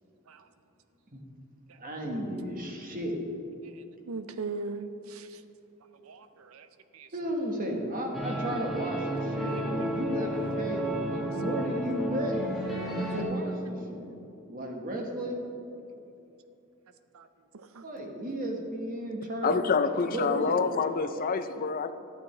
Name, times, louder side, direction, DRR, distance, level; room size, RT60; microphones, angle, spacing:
voice 1, 1.8-3.2 7.1-10.9 11.2-12.4 13.1-14.1 14.5-15.4 17.8-19.6 20.1-20.7, right 1 dB, 45° right, 1 dB, 1.3 m, -34 dB
voice 2, 4.1-5.3 6.0-6.7 6.9-7.1 11.1-11.2 11.6-11.7 13.0-13.1 17.1-17.2 17.7-17.8, right 3 dB, 80° right, 10 dB, 0.5 m, -38 dB
sound 1, 8.1-13.2, equal, ahead, 1.4 m, -32 dB
voice 3, 19.4-21.9, left 5 dB, 45° left, 10 dB, 0.4 m, -27 dB
12.0 x 8.6 x 3.3 m, 2.8 s
head